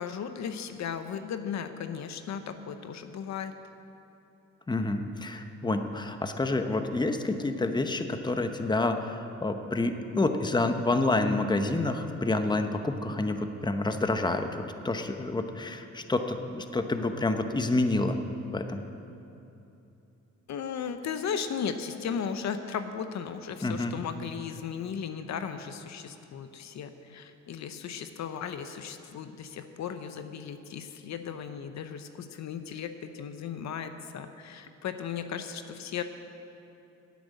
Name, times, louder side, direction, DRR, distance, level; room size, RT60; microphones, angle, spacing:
voice 1, 0.0-3.5 20.5-36.0, left 7 dB, 65° left, 9 dB, 0.8 m, -36 dB
voice 2, 4.7-18.2 18.5-18.8 23.6-23.9, left 2 dB, 15° left, 7 dB, 0.9 m, -28 dB
10.5 x 9.0 x 8.3 m, 2.9 s
cardioid pair, 80°, 29 cm